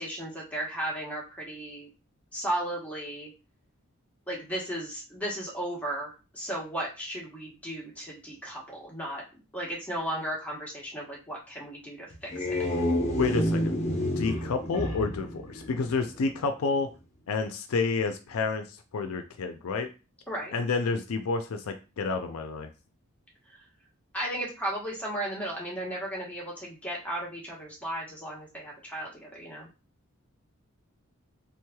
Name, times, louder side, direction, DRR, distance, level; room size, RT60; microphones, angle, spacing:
voice 1, 0.0-1.9 2.3-3.3 4.3-9.2 9.5-12.6 20.3-20.5 24.1-29.7, right 1 dB, 5° left, -4 dB, 1.1 m, -35 dB
sound 1, 12.1-16.3, left 1 dB, 30° left, 0.7 m, -29 dB
voice 2, 13.2-13.8 14.2-16.9 17.3-18.6 18.9-19.9 20.5-22.7, left 4 dB, 70° left, 6 dB, 0.4 m, -29 dB
3.5 x 3.1 x 2.3 m, 0.31 s
head